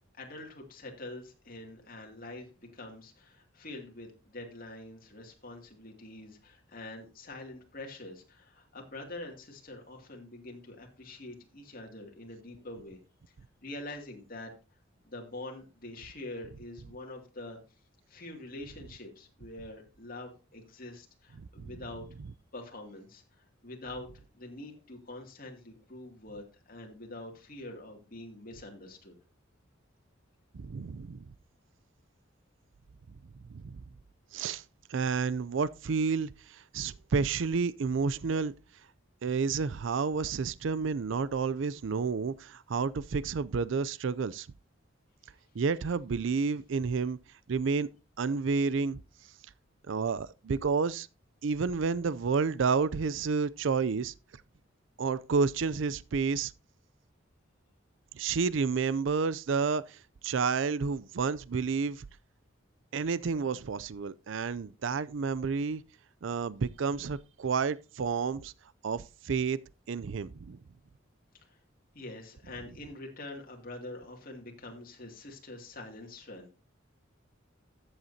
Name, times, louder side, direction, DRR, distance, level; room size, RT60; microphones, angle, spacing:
voice 1, 0.1-13.0 13.6-14.5 15.0-17.6 18.1-22.0 22.5-29.2 71.4-71.6 71.9-76.6, left 2 dB, 45° left, 2.5 m, -45 dB
voice 2, 21.4-21.7 30.5-31.3 33.5-33.8 34.3-34.6 34.9-38.5 39.2-44.5 45.5-47.2 47.5-47.9 48.2-49.0 49.9-51.1 51.4-54.1 55.0-56.5 58.1-62.0 62.9-65.8 66.2-68.5 68.8-69.6 69.9-70.6, right 5 dB, 70° right, 0.5 m, -30 dB
14.0 x 7.9 x 2.8 m
head